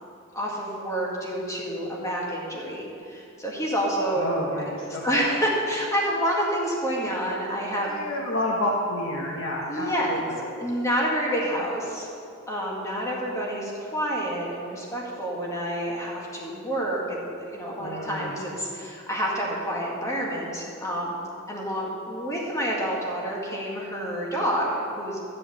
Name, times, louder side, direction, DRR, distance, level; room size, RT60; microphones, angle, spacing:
voice 1, 0.3-4.3 5.0-7.9 9.6-10.1 10.6-12.1 12.5-21.1 21.5-25.2, equal, 15° left, -4 dB, 2.0 m, -28 dB
voice 2, 4.1-5.2 7.9-10.4 17.8-18.3, left 1 dB, 65° left, -4 dB, 1.4 m, -30 dB
13.0 x 5.0 x 8.5 m, 2.6 s
head